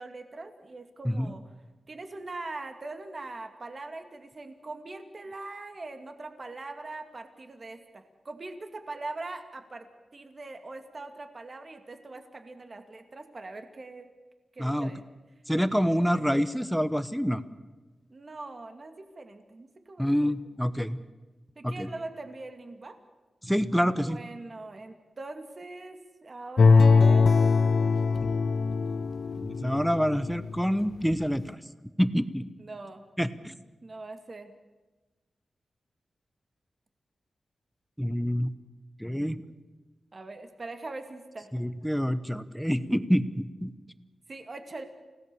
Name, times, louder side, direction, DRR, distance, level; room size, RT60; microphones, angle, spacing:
voice 1, 0.0-1.4 1.9-9.9 10.1-14.1 14.5-15.0 15.8-16.4 18.1-20.1 21.6-22.9 24.0-27.3 32.6-33.0 33.8-34.5 40.1-41.5 44.3-44.8, right 2 dB, 35° right, 7 dB, 2.3 m, -42 dB
voice 2, 14.6-14.9 15.5-17.4 20.0-21.0 21.6-21.9 23.4-24.2 28.2-28.3 29.4-31.6 32.0-32.4 33.2-33.5 38.0-38.5 39.0-39.4 41.5-43.7, equal, ahead, 12 dB, 1.0 m, -27 dB
sound 1, 26.6-30.6 31.1-31.2, left 4 dB, 60° left, 0.8 m, -22 dB
29.0 x 17.5 x 7.0 m, 1.2 s
wide cardioid pair, 130°, 0 cm